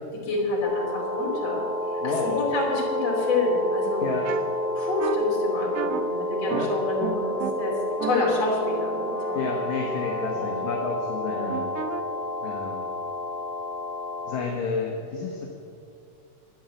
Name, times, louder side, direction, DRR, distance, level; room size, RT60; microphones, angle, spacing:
voice 1, 0.2-1.6 2.0-4.2 4.8-7.7 8.0-9.5 10.3-10.6 11.3-11.6, left 3 dB, 60° left, -3 dB, 4.0 m, -27 dB
sound 1, 0.6-14.4, left 1 dB, 40° left, 3.5 m, -30 dB
voice 2, 2.0-2.4 4.0-4.3 6.5-6.7 9.3-11.6 12.4-12.8 14.3-15.5, left 4 dB, 75° left, 0 dB, 2.4 m, -30 dB
sound 2, 4.2-4.4 5.0-5.2 5.7-6.0 6.5-6.7 7.0-7.5 8.0-10.2 11.5-12.0, right 10 dB, 90° right, 1.3 m, -33 dB
10.5 x 8.7 x 8.9 m, 2.5 s
omnidirectional pair, 3.3 m